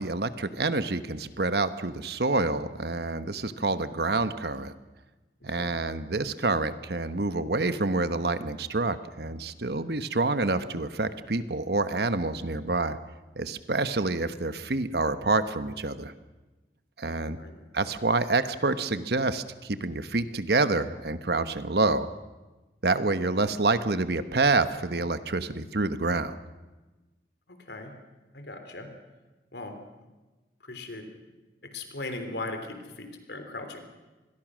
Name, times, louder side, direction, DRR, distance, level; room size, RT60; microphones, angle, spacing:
voice 1, 0.0-4.7 5.4-13.0 13.4-16.1 17.0-17.4 17.7-22.1 22.8-26.4, right 3 dB, 65° right, 11 dB, 1.1 m, -27 dB
voice 2, 27.5-27.9 28.3-28.9 29.5-29.8 30.6-31.1 31.6-33.8, left 2 dB, 75° left, 6 dB, 3.4 m, -38 dB
26.0 x 21.0 x 6.3 m, 1.2 s
head